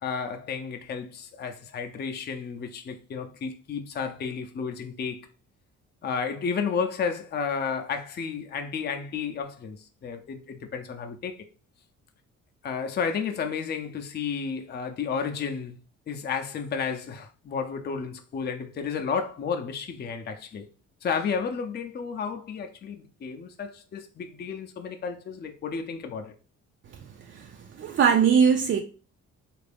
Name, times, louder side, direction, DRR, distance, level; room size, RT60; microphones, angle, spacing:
voice 1, 0.0-5.3 6.0-11.4 12.6-15.8 16.1-20.7 21.0-26.3, left 6 dB, 35° left, 0.5 m, -32 dB
voice 2, 27.8-28.8, right 7 dB, 40° right, 0.4 m, -20 dB
3.3 x 2.5 x 3.4 m
cardioid pair, 90°, 30 cm